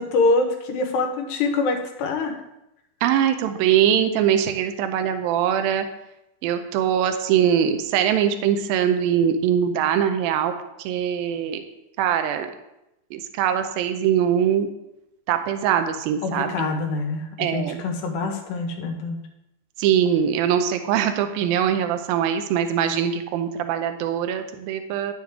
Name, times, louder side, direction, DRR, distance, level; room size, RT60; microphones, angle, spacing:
voice 1, 0.0-2.4 16.2-19.2, left 3 dB, 90° left, 3 dB, 3.2 m, -25 dB
voice 2, 3.0-5.9 6.4-10.5 10.8-11.6 12.0-12.5 13.1-14.7 15.3-16.8 17.4-17.8 19.8-25.1, right 9 dB, 80° right, 8 dB, 2.2 m, -22 dB
9.4 x 7.3 x 3.6 m, 0.88 s
omnidirectional pair, 4.6 m